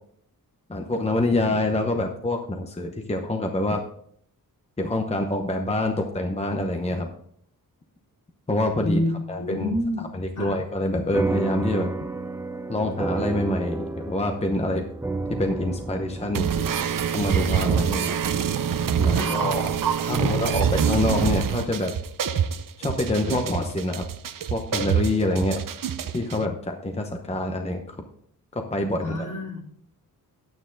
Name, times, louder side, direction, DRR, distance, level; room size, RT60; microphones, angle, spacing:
voice 1, 0.7-3.8 4.8-7.1 8.5-9.0 9.3-9.7 10.1-11.9 12.7-14.8 15.3-16.6 17.1-18.2 19.0-19.7 20.0-21.9 22.8-24.0 24.5-25.6 26.1-28.0 28.5-29.3, left 1 dB, 15° left, 4 dB, 0.9 m, -26 dB
voice 2, 8.8-10.1 10.4-10.6 19.1-19.5 20.1-20.4 29.0-29.6, left 1 dB, 55° left, -1 dB, 2.8 m, -28 dB
sound 1, 11.1-19.9, right 3 dB, 5° right, 0.5 m, -32 dB
sound 2, 16.3-26.4, right 8 dB, 60° right, 0.7 m, -25 dB
9.7 x 8.9 x 3.9 m, 0.65 s
wide cardioid pair, 125°, 37 cm